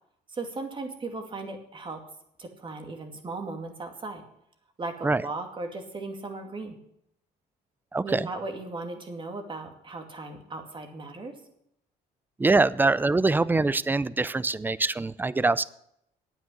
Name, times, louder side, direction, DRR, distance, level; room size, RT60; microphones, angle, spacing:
voice 1, 0.3-2.0 2.4-4.2 4.8-6.8 8.0-11.3, right 3 dB, 30° right, 5 dB, 2.5 m, -37 dB
voice 2, 7.9-8.3 12.4-15.6, right 3 dB, 10° right, 19 dB, 0.4 m, -24 dB
9.2 x 9.1 x 8.6 m, 0.74 s
cardioid pair, 110°, 17 cm